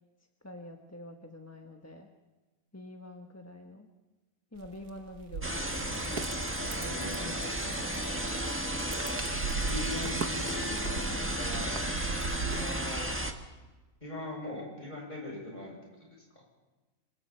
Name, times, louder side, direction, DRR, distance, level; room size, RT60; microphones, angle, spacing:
voice 1, 0.4-2.1 2.7-3.9 4.5-6.1 6.7-8.2, left 1 dB, 10° left, 3 dB, 1.2 m, -47 dB
sound 1, 4.6-12.9, right 5 dB, 85° right, 1.8 m, -39 dB
sound 2, 5.4-13.3, right 1 dB, 10° right, 1.4 m, -33 dB
voice 2, 6.8-7.4 9.5-11.8 12.4-13.1 14.0-16.4, left 1 dB, 30° left, -2 dB, 7.8 m, -41 dB
26.5 x 24.5 x 4.5 m, 1.2 s
omnidirectional pair, 1.6 m